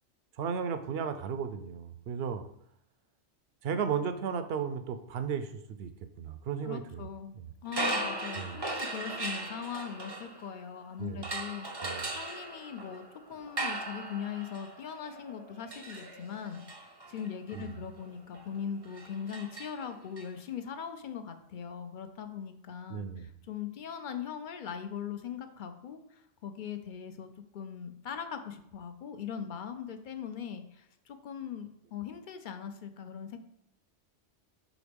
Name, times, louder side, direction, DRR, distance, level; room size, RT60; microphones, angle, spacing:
voice 1, 0.4-2.4 3.6-5.5 5.8-5.9 6.2-7.1 7.3-7.5 8.3-8.6 11.0-11.3 11.8-12.1 17.5-17.7 22.9-23.3, right 7 dB, 65° right, 10 dB, 0.7 m, -34 dB
voice 2, 6.6-11.7 12.1-33.4, left 8 dB, 55° left, 8 dB, 0.6 m, -40 dB
sound 1, 7.7-10.8 11.2-20.2, right 2 dB, 25° right, 0.6 m, -38 dB
5.0 x 3.9 x 5.2 m, 0.74 s
omnidirectional pair, 1.2 m